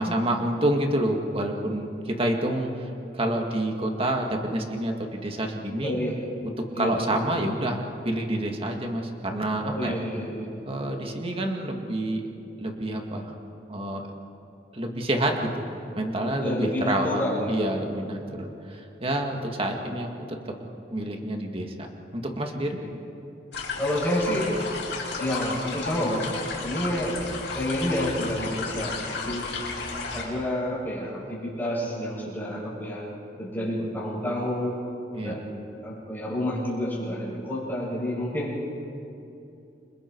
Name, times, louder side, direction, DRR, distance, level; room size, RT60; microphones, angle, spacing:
voice 1, 0.0-2.8 3.1-6.0 6.4-10.0 10.7-12.3 12.6-13.3 13.7-14.0 14.7-15.7 16.0-17.2 17.5-20.5 20.9-21.7 22.1-22.8 35.1-35.4, right 1 dB, 30° right, 2 dB, 2.0 m, -28 dB
voice 2, 5.8-6.2 6.7-6.9 9.6-10.5 16.2-17.7 23.8-24.5 25.2-26.3 26.6-27.2 27.5-29.5 30.1-33.0 33.4-34.8 35.2-35.5 35.8-38.5, left 1 dB, 10° left, -7 dB, 7.7 m, -29 dB
sound 1, 23.5-30.2, left 4 dB, 70° left, 5.6 m, -33 dB
29.5 x 25.5 x 4.7 m, 2.8 s
head